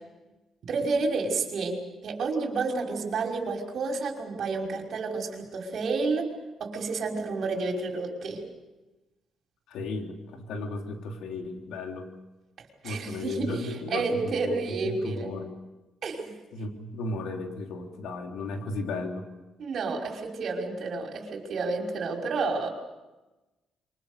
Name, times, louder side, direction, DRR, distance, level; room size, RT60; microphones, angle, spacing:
voice 1, 0.6-6.3 6.6-8.4 12.8-15.3 16.0-16.4 19.6-22.7, right 4 dB, 60° right, 1 dB, 5.7 m, -30 dB
voice 2, 9.7-12.1 12.8-15.5 16.5-19.3, left 3 dB, 80° left, 3 dB, 3.6 m, -35 dB
27.0 x 24.0 x 6.7 m, 1.1 s
cardioid pair, 90°, 0 cm